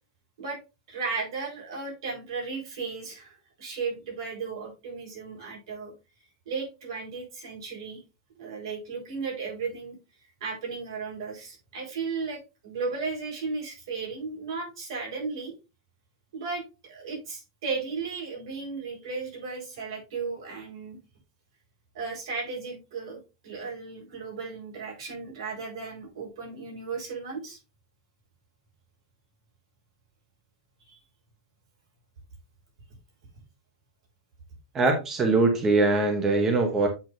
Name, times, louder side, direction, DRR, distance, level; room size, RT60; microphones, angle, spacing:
voice 1, 0.9-5.9 6.5-8.0 8.4-10.0 10.4-15.5 16.3-21.0 21.9-27.6 30.9-31.0, right 4 dB, 70° right, 0 dB, 4.3 m, -35 dB
voice 2, 34.7-36.9, right 3 dB, 15° right, 4 dB, 0.9 m, -22 dB
8.0 x 6.1 x 2.6 m, 0.28 s
supercardioid pair, 180°, 3 cm